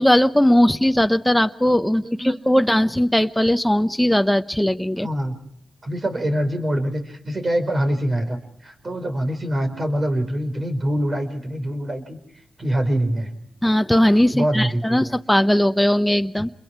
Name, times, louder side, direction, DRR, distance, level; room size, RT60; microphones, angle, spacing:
voice 1, 0.0-5.1 13.6-16.5, left 1 dB, 5° left, 9 dB, 1.0 m, -18 dB
voice 2, 2.0-2.4 5.0-5.4 5.8-12.2 12.6-13.3 14.3-15.1, right 1 dB, 45° right, 6 dB, 4.8 m, -24 dB
28.0 x 22.0 x 4.7 m, 0.73 s
cardioid pair, 55°, 0 cm